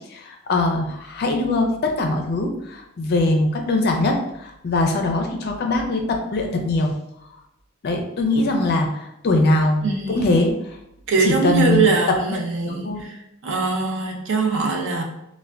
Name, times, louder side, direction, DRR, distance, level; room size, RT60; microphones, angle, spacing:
voice 1, 0.1-6.9 7.8-10.8 11.2-11.9 12.3-13.0, left 2 dB, 45° left, 3 dB, 0.4 m, -22 dB
voice 2, 9.8-10.4 11.1-15.0, right 4 dB, 55° right, 2 dB, 0.5 m, -22 dB
3.3 x 2.1 x 2.4 m, 0.80 s
head